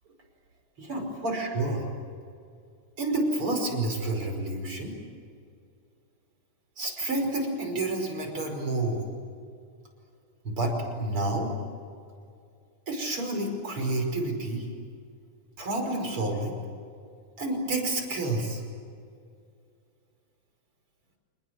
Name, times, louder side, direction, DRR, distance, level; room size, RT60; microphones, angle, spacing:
voice 1, 0.8-1.9 3.0-4.9 6.8-9.0 10.4-11.5 12.9-14.7 15.6-16.6 17.4-18.6, right 2 dB, 45° right, 3 dB, 6.0 m, -29 dB
28.0 x 20.5 x 9.5 m, 2.3 s
omnidirectional pair, 3.5 m